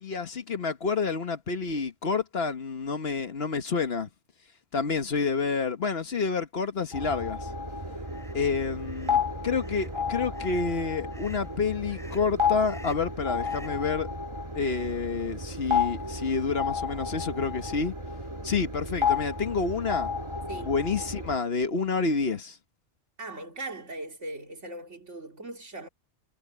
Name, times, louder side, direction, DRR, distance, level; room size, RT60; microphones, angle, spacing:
voice 1, 0.0-4.1 4.7-7.5 8.3-14.1 14.5-17.9 18.4-20.1 20.6-22.6, left 4 dB, 60° left, 1.5 m, -29 dB
sound 1, 6.9-21.4, left 5 dB, 25° right, 1.5 m, -32 dB
sound 2, 8.1-8.3 8.8-9.2 9.6-10.0 10.3-10.7 11.1-11.5 11.9-12.3 12.7-13.1 13.4-13.8, equal, ahead, 3.7 m, -50 dB
voice 2, 23.2-25.9, right 2 dB, 85° right, 3.3 m, -39 dB
omnidirectional pair, 1.2 m